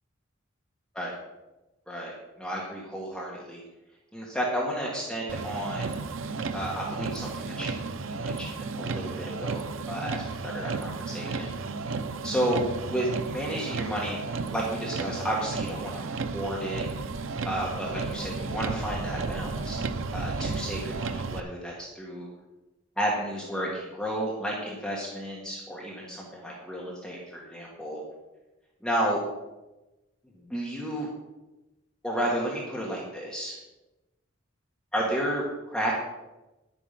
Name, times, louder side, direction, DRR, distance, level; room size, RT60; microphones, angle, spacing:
voice 1, 2.4-3.6 4.1-5.9 6.5-7.8 8.1-11.5 12.2-14.2 14.5-16.8 17.4-19.8 20.1-22.3 23.0-28.0 28.8-29.2 30.3-31.1 32.0-33.6 34.9-35.9, equal, 5° left, -4 dB, 1.9 m, -32 dB
Motor vehicle (road), 5.3-21.4, right 4 dB, 75° right, 0.6 m, -33 dB
11.0 x 8.7 x 5.9 m, 1.0 s
head